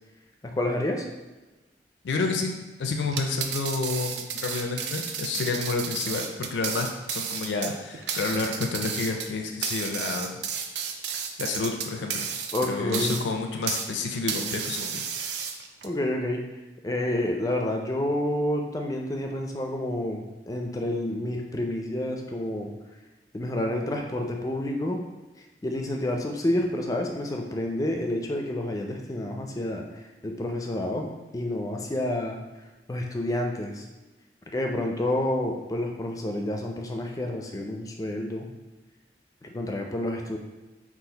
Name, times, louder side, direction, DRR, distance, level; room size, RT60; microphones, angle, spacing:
voice 1, 0.4-1.0 12.5-13.2 15.8-16.4 16.8-22.7 23.3-25.0 25.6-29.8 30.2-32.4 32.9-33.8 34.5-38.5 39.4-40.4, left 1 dB, 20° left, 2 dB, 0.4 m, -29 dB
voice 2, 2.0-2.5 2.8-10.4 11.4-12.3 12.7-15.0, left 3 dB, 80° left, 3 dB, 0.4 m, -29 dB
sound 1, 3.1-13.9 14.3-15.9, right 7 dB, 65° right, 0.4 m, -32 dB
4.0 x 2.4 x 3.9 m, 1.2 s
head